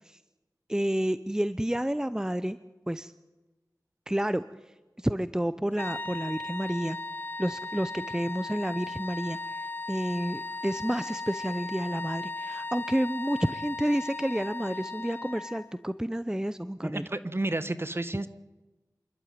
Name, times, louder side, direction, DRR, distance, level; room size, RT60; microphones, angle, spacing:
voice 1, 0.7-2.6 2.9-3.1 4.1-4.4 5.0-7.0 7.4-17.1, right 1 dB, 10° right, 13 dB, 0.7 m, -30 dB
sound 1, 5.7-15.7, left 3 dB, 30° left, 0.6 m, -37 dB
voice 2, 16.8-18.3, right 2 dB, 35° right, 12 dB, 1.4 m, -31 dB
27.5 x 12.0 x 9.4 m, 1.1 s
wide cardioid pair, 50°, 7 cm